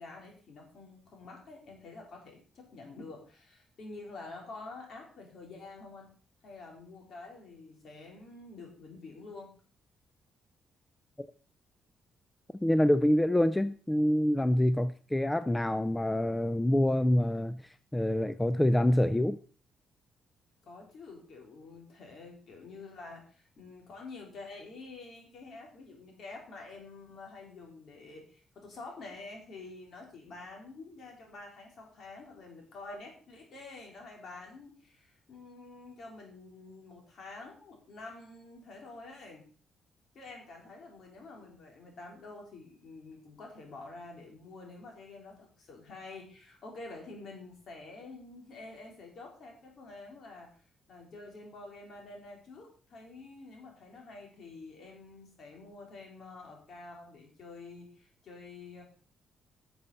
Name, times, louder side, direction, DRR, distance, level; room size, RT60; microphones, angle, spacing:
voice 1, 0.0-6.1 6.4-9.5 20.6-39.4 40.1-50.5 50.9-58.8, left 3 dB, 60° left, 4.0 m, -48 dB
voice 2, 12.6-17.6 17.9-19.4, left 1 dB, 10° left, 0.4 m, -26 dB
12.0 x 7.0 x 4.3 m
cardioid pair, 95°, 0 cm